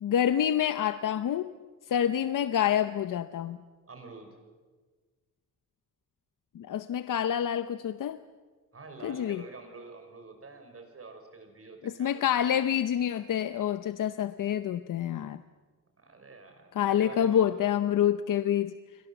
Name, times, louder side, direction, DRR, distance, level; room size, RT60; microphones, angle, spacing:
voice 1, 0.0-1.5 1.9-3.6 6.5-8.2 9.0-9.4 11.8-15.4 16.8-18.7, left 10 dB, 85° left, 11 dB, 0.8 m, -27 dB
voice 2, 3.9-4.4 8.7-12.4 16.0-17.7, right 3 dB, 50° right, 5 dB, 5.7 m, -47 dB
30.0 x 23.0 x 7.2 m, 1.4 s
wide cardioid pair, 110°, 31 cm